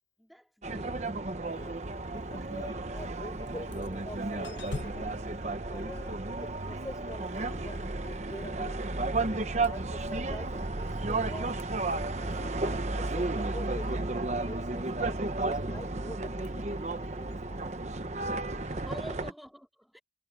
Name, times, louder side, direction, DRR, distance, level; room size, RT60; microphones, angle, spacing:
voice 1, 0.2-1.0 18.7-20.0, equal, ahead, 4.6 m, -46 dB
sound 1, 0.6-19.3, right 2 dB, 40° right, 1.0 m, -33 dB
voice 2, 1.5-1.8 2.1-5.3 5.7-8.8 9.6-11.5 12.2-17.8 19.1-19.3, left 1 dB, 20° left, 6.4 m, -46 dB
sound 2, 3.5-3.9 4.4-6.8 9.6-9.9 10.9-11.1 11.5-11.6 16.4-16.5, left 3 dB, 90° left, 0.7 m, -43 dB
head